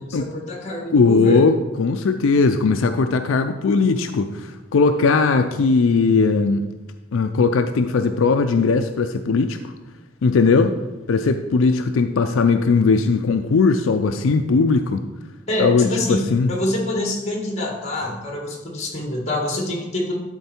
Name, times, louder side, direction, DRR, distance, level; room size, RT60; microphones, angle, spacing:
voice 1, 0.0-1.4 15.5-20.1, left 1 dB, 35° left, 0 dB, 1.8 m, -26 dB
voice 2, 0.9-6.6 7.1-9.7 10.2-10.8 11.1-15.0 15.6-16.5, left 4 dB, 85° left, 7 dB, 0.4 m, -18 dB
11.5 x 4.5 x 4.4 m, 1.1 s
head